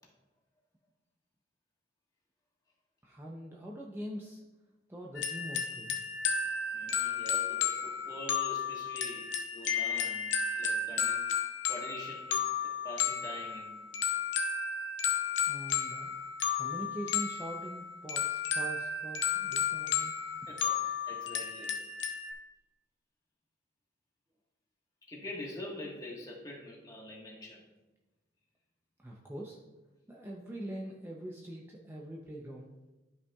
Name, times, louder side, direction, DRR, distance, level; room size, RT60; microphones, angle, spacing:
voice 1, 3.0-4.4 4.9-6.0 15.5-16.2 16.5-20.1 29.0-29.6 30.1-32.7, right 1 dB, 15° right, -2 dB, 0.6 m, -43 dB
sound 1, 5.2-22.3, left 6 dB, 80° left, 0.7 m, -33 dB
voice 2, 6.7-10.2 10.5-11.2 11.7-12.5 12.8-13.8 20.5-21.7 25.1-27.6, left 1 dB, 20° left, -2 dB, 1.4 m, -45 dB
12.5 x 5.6 x 2.3 m, 1.1 s
head